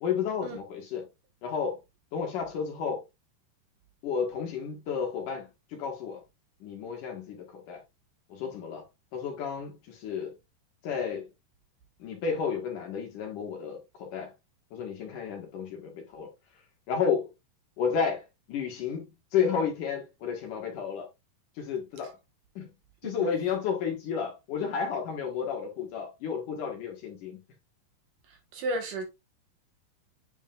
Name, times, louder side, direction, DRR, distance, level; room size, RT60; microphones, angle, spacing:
voice 1, 0.0-1.1 1.4-1.8 2.1-3.0 4.0-6.2 6.6-7.8 8.3-8.8 9.1-10.4 10.8-11.3 12.0-14.3 14.7-16.3 16.9-17.3 17.8-19.1 19.3-21.1 21.6-22.2 22.6-22.7 23.0-27.4, left 6 dB, 60° left, 2.8 m, -32 dB
voice 2, 28.3-29.1, right 1 dB, 65° right, 2.6 m, -34 dB
9.4 x 5.0 x 2.4 m
omnidirectional pair, 4.5 m